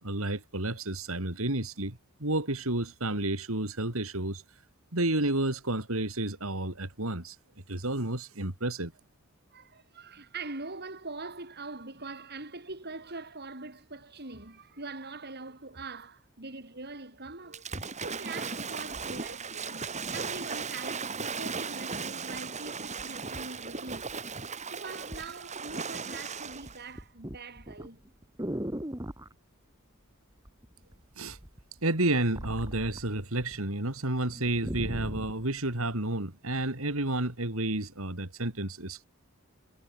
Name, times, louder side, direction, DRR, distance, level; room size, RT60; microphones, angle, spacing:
voice 1, 0.0-4.4 4.9-7.4 7.7-8.9 31.2-31.4 31.8-39.0, right 2 dB, 70° right, 3.7 m, -31 dB
voice 2, 9.5-24.1 24.7-28.0, right 3 dB, 50° right, 4.5 m, -43 dB
Waves surf / Splash splatter, 17.5-26.8, right 5 dB, 30° right, 4.3 m, -37 dB
sound 1, 22.3-22.4 23.0-24.5 25.1-25.3 25.7-26.2 26.5-29.3 30.4-31.0 31.3-33.6 33.9-34.0 34.3-35.4 36.1-36.2, equal, 15° right, 1.9 m, -39 dB
head